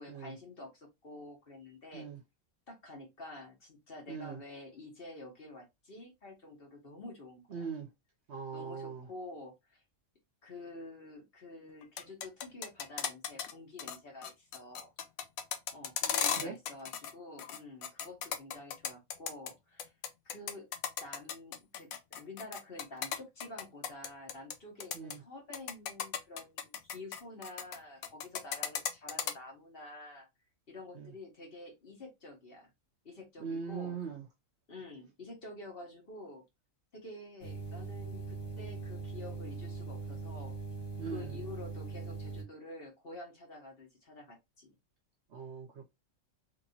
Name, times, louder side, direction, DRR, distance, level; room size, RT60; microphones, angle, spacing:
voice 1, 0.0-2.1 2.7-7.6 8.5-9.8 10.4-14.9 15.7-19.9 20.2-20.7 21.0-30.3 30.7-32.7 33.0-34.0 34.7-36.4 36.9-40.6 41.0-44.7, left 2 dB, 45° left, 1.2 m, -49 dB
voice 2, 4.1-4.4 7.5-7.9 8.3-9.1 16.3-16.6 24.9-25.2 30.9-31.1 33.4-34.2 41.0-41.4 45.3-45.9, right 6 dB, 60° right, 0.8 m, -41 dB
sound 1, 11.8-13.5 13.8-14.0 14.2-17.1 17.4-19.5 19.8-24.5 24.8-25.1 25.5-27.8 28.0-29.3, left 8 dB, 90° left, 1.1 m, -35 dB
sound 2, 37.4-42.4, right 4 dB, 20° left, 1.2 m, -41 dB
3.1 x 2.9 x 2.6 m
omnidirectional pair, 1.4 m